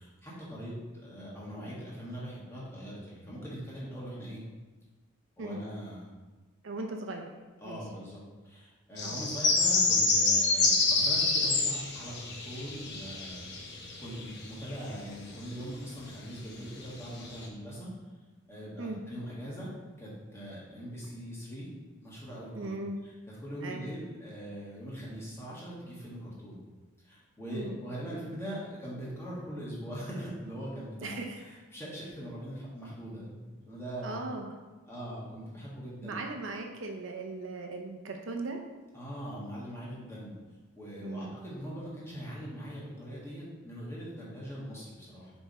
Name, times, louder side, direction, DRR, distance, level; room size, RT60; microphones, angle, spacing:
voice 1, 0.0-4.4 5.4-6.1 7.6-13.5 14.0-17.9 18.4-19.7 20.0-21.7 22.0-23.1 23.4-26.6 27.0-34.2 34.9-36.2 38.9-40.3 40.7-45.3, equal, 10° left, -7 dB, 1.6 m, -41 dB
voice 2, 6.6-7.3 7.6-7.8 9.0-9.2 18.8-19.0 22.5-23.0 23.6-23.9 27.5-27.8 31.0-31.4 34.0-34.5 36.0-38.6 41.0-41.3, right 2 dB, 60° right, 2 dB, 0.6 m, -38 dB
sound 1, 9.0-14.7 15.4-15.5 16.4-16.5 16.8-17.4, left 3 dB, 50° left, 1.0 m, -27 dB
7.2 x 3.6 x 4.2 m, 1.2 s
head